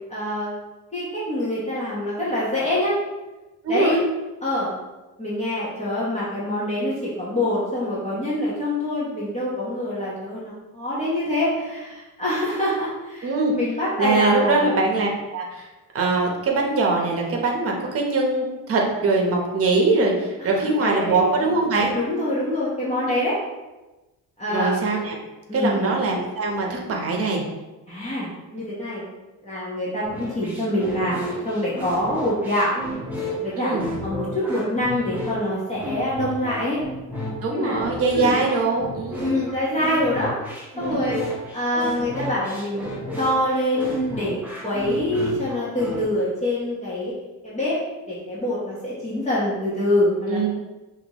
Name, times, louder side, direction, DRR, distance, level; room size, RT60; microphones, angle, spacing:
voice 1, 0.1-0.5 0.9-3.0 3.7-4.0 4.4-4.7 5.2-14.7 20.4-21.3 21.9-23.4 24.4-24.8 25.5-25.9 27.9-29.0 29.4-32.7 33.4-33.7 34.0-36.8 37.5-37.8 38.1-38.4 39.2-40.5 40.8-41.2 41.5-42.9 43.2-47.1 47.4-47.8 48.1-50.5, left 1 dB, 20° left, -9 dB, 1.1 m, -25 dB
voice 2, 3.6-4.0 13.2-13.5 14.0-15.7 15.9-22.0 24.5-25.1 25.5-27.4 33.6-33.9 37.4-39.3 40.9-41.2 50.3-50.5, right 3 dB, 40° right, 0 dB, 1.0 m, -22 dB
sound 1, 30.0-46.0, equal, 5° right, 1.1 m, -32 dB
5.8 x 2.8 x 3.0 m, 1.1 s
cardioid pair, 130°, 36 cm